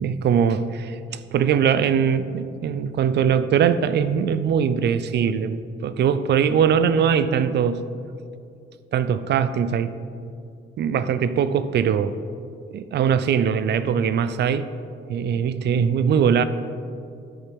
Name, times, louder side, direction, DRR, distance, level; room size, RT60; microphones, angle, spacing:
voice 1, 0.0-7.8 8.9-9.9 10.8-12.2 12.7-14.7 15.1-16.4, right 7 dB, 60° right, 13 dB, 0.5 m, -21 dB
10.0 x 8.5 x 3.5 m, 2.5 s
cardioid pair, 90°, 20 cm